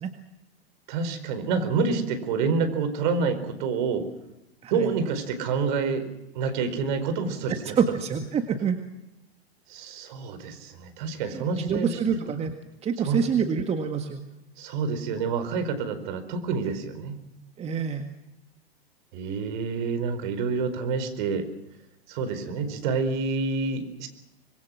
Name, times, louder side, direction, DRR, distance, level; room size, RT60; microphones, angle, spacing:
voice 1, 0.9-4.0 4.7-6.1 6.3-7.8 9.7-12.0 13.0-13.2 14.6-17.2 19.1-21.5 22.1-24.1, right 5 dB, 50° right, 10 dB, 4.7 m, -28 dB
voice 2, 7.5-8.8 11.3-12.5 12.8-14.2 17.6-18.1, right 6 dB, 20° right, 6 dB, 1.8 m, -27 dB
25.5 x 22.0 x 6.3 m, 0.92 s
figure-of-eight pair, 105°, 31 cm